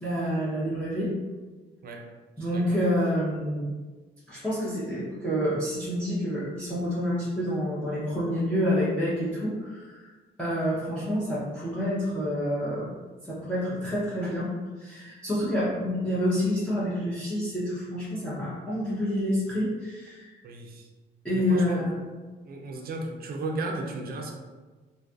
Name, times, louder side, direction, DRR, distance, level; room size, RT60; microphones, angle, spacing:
voice 1, 0.0-1.1 2.4-3.6 4.3-10.1 10.4-12.9 13.3-14.5 14.8-20.3 21.2-22.0, equal, 5° left, -10 dB, 0.7 m, -28 dB
voice 2, 2.4-2.8 20.4-20.9 21.3-21.9 22.4-24.3, right 2 dB, 50° right, 2 dB, 0.5 m, -35 dB
2.5 x 2.4 x 2.3 m, 1.3 s
cardioid pair, 90°, 20 cm